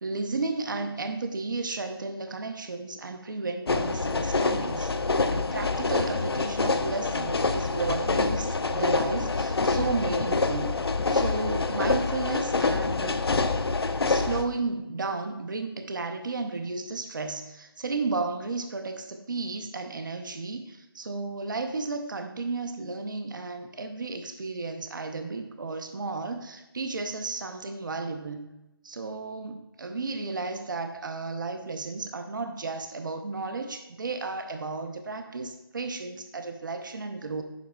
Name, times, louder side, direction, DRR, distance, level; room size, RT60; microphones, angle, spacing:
voice 1, 0.0-4.9 5.2-10.8 11.1-13.2 14.1-28.5 28.8-37.4, right 3 dB, 55° right, 6 dB, 0.7 m, -33 dB
sound 1, 3.7-14.4, left 3 dB, 80° left, 0.6 m, -26 dB
9.2 x 6.2 x 2.3 m, 0.95 s
figure-of-eight pair, 170°, 13 cm